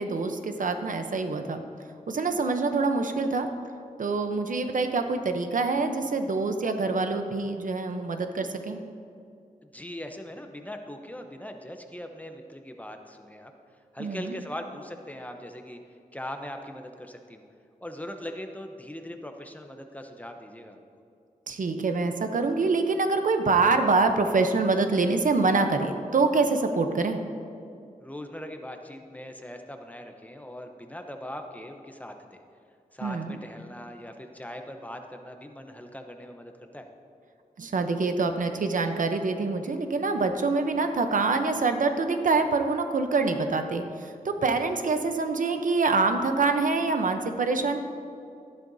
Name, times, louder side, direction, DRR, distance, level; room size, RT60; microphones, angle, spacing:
voice 1, 0.0-1.6 2.1-3.5 4.0-8.8 14.0-14.4 21.5-27.2 33.0-33.4 37.6-47.8, right 3 dB, 70° right, 7 dB, 0.8 m, -25 dB
voice 2, 9.7-13.5 13.9-15.8 16.1-17.4 17.8-20.8 28.0-32.4 32.9-36.9, left 1 dB, 10° left, 5 dB, 0.7 m, -40 dB
13.0 x 11.5 x 2.7 m, 2.4 s
wide cardioid pair, 105°, 14 cm